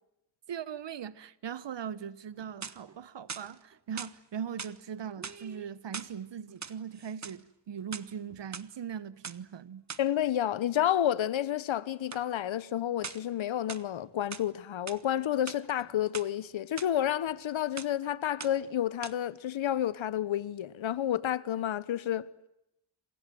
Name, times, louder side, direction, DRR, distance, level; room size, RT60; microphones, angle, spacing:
voice 1, 0.5-9.8, right 8 dB, 65° right, 1.3 m, -40 dB
sound 1, 2.3-3.0 3.3-4.2 4.6-4.8 5.2-6.2 6.5-7.4 7.8-8.7 9.2-9.4 9.9-10.1 12.1-12.3 13.0-13.3 13.7-14.5 14.9-15.0 15.3-16.3 16.8-16.9 17.3-17.5 17.8-18.0 18.4-18.7 19.0-19.1, right 5 dB, 35° right, 1.3 m, -42 dB
voice 2, 10.0-22.3, left 11 dB, 90° left, 1.2 m, -30 dB
27.5 x 27.0 x 7.8 m
cardioid pair, 85°, 46 cm